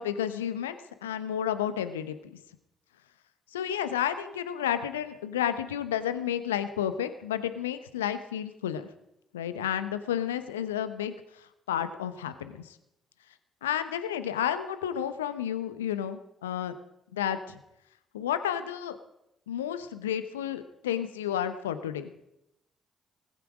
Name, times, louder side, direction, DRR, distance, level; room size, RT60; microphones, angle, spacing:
voice 1, 0.0-2.1 3.5-8.9 9.3-11.2 11.7-12.6 13.6-16.7 17.1-17.6 18.1-19.0 19.5-22.1, left 10 dB, 80° left, 12 dB, 0.8 m, -31 dB
18.0 x 15.5 x 4.9 m, 0.83 s
figure-of-eight pair, 45°, 0 cm